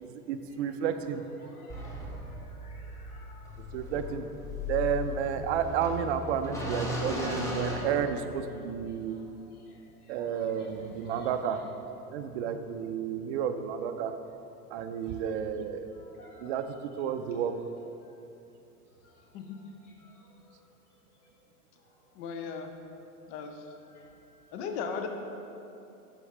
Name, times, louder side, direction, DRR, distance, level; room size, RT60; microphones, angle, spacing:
voice 1, 0.0-1.2 3.7-4.3 4.7-9.2 10.1-11.6 12.1-14.1 14.7-15.9 16.4-17.5, right 8 dB, 45° right, 9 dB, 0.5 m, -31 dB
voice 2, 1.4-3.9 9.1-9.2 10.1-11.3 16.0-16.5 19.0-19.3 19.8-20.1 23.9-24.1, left 2 dB, 75° left, -2 dB, 1.4 m, -56 dB
sound 1, 1.7-8.6, left 2 dB, 5° left, 0.8 m, -37 dB
voice 3, 22.2-22.7 23.3-23.6 24.5-25.1, left 6 dB, 25° left, 4 dB, 0.4 m, -36 dB
6.9 x 5.5 x 3.4 m, 2.8 s
hypercardioid pair, 100°, 46 cm